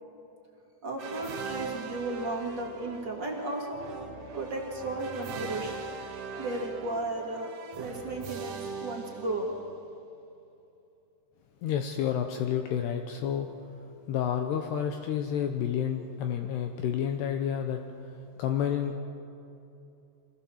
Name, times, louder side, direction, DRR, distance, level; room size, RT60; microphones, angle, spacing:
voice 1, 0.8-3.8 4.3-5.8 6.4-9.5, right 2 dB, 35° right, -1 dB, 2.1 m, -34 dB
sound 1, 1.0-9.9, right 4 dB, 90° right, 1.3 m, -41 dB
voice 2, 11.6-13.5 14.1-18.1 18.4-19.0, left 9 dB, 75° left, 5 dB, 2.8 m, -30 dB
25.0 x 18.0 x 7.2 m, 2.8 s
omnidirectional pair, 5.3 m